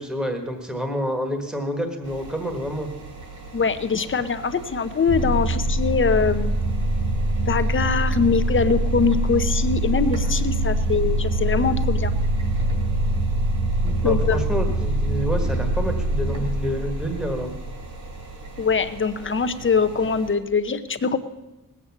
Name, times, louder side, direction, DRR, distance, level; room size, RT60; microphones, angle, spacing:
voice 1, 0.0-2.9 13.8-17.5, equal, ahead, 4 dB, 1.5 m, -28 dB
sound 1, 2.0-20.3, right 2 dB, 55° right, 3.9 m, -40 dB
voice 2, 3.5-6.6 7.4-12.1 14.0-14.4 18.6-21.2, left 5 dB, 35° left, 10 dB, 0.8 m, -23 dB
sound 2, 5.1-18.0, right 1 dB, 80° right, 2.1 m, -24 dB
19.0 x 8.2 x 7.2 m, 1.0 s
wide cardioid pair, 160°, 34 cm